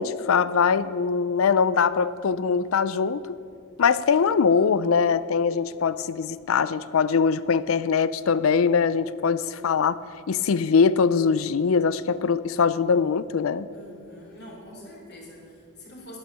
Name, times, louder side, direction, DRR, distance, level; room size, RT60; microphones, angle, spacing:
voice 1, 0.0-3.4 3.8-10.0 10.3-13.7, left 5 dB, 70° left, 16 dB, 0.4 m, -22 dB
voice 2, 13.7-16.2, equal, 50° left, -2 dB, 3.6 m, -45 dB
11.5 x 10.0 x 7.2 m, 2.4 s
head